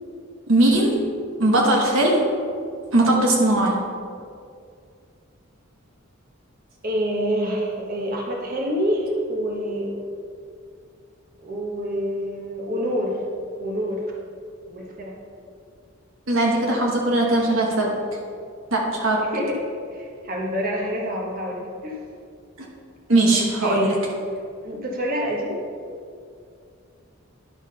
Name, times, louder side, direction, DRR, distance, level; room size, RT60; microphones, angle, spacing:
voice 1, 0.5-1.0 1.4-2.2 2.9-3.8 16.3-18.0 18.7-19.3 22.6-22.7 23.1-23.9, right 2 dB, 70° right, -1 dB, 1.3 m, -19 dB
voice 2, 6.8-10.0 11.4-13.2 13.6-14.0 14.7-15.2 19.2-19.6 19.9-22.0 23.6-24.1 24.3-25.6, equal, 45° right, -2 dB, 1.3 m, -27 dB
10.5 x 4.8 x 5.5 m, 2.3 s
head